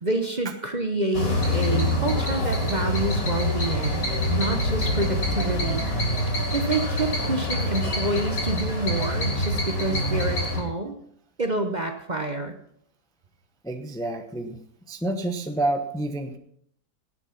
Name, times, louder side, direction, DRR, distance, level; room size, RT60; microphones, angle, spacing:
voice 1, 0.0-5.8 6.5-11.0 11.4-12.5, right 2 dB, 30° right, 5 dB, 0.9 m, -28 dB
sound 1, 1.1-10.6, left 1 dB, 85° left, 4.4 m, -25 dB
voice 2, 13.6-14.6 14.9-16.4, right 1 dB, 5° left, 6 dB, 0.7 m, -28 dB
18.0 x 7.5 x 5.8 m, 0.67 s
omnidirectional pair, 1.8 m